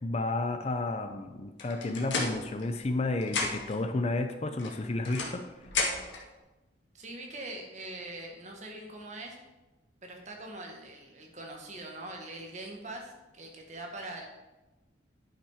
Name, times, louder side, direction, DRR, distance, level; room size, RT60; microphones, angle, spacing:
voice 1, 0.0-5.5, left 2 dB, 35° left, 8 dB, 0.5 m, -31 dB
sound 1, 1.6-3.0 3.2-3.8 4.6-6.2, left 3 dB, 75° left, 1.7 m, -33 dB
voice 2, 6.9-9.4 10.0-14.3, right 2 dB, 40° right, 1 dB, 1.5 m, -42 dB
10.0 x 5.9 x 4.9 m, 1.1 s
head